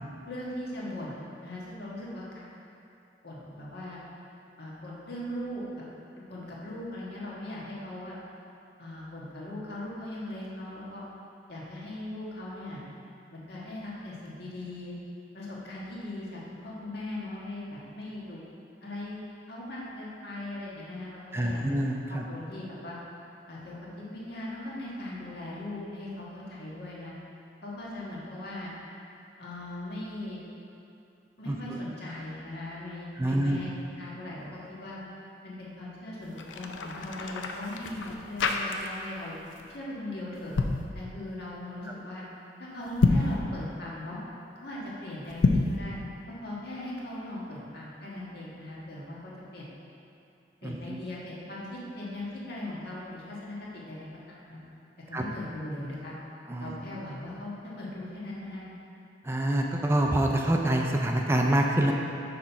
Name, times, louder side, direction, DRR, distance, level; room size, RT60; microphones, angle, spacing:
voice 1, 0.3-2.5 3.2-4.0 4.6-5.8 6.2-8.2 8.8-11.0 11.5-12.8 13.3-14.9 15.3-18.4 18.8-21.8 22.1-23.0 23.5-27.1 27.6-28.7 29.4-30.4 31.4-33.7 34.0-35.0 35.4-39.4 39.7-40.5 40.9-42.2 42.6-44.2 44.6-45.9 46.3-49.7 50.6-54.6 55.1-56.2 56.6-58.7, left 1 dB, 60° left, -6 dB, 1.4 m, -39 dB
voice 2, 21.3-22.2 31.5-31.8 33.2-33.6 50.6-50.8 55.1-55.2 56.5-56.7 59.2-61.9, right 1 dB, 15° right, 1 dB, 0.4 m, -26 dB
sound 1, 36.2-39.2 39.5-39.8 40.4-40.9 42.9-43.4 45.3-45.8, left 3 dB, 85° left, 0.5 m, -27 dB
6.2 x 4.4 x 5.6 m, 2.7 s
head